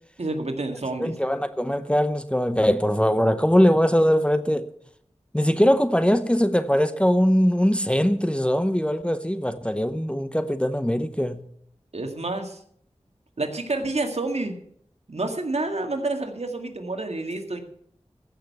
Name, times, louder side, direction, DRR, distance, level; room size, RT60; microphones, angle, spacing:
voice 1, 0.2-1.2 11.9-12.6 13.4-14.6 15.1-17.6, right 2 dB, 70° right, 1.9 m, -29 dB
voice 2, 1.0-4.7 5.3-11.5, equal, 10° left, 0.8 m, -21 dB
15.0 x 6.6 x 8.1 m
wide cardioid pair, 55°, 11 cm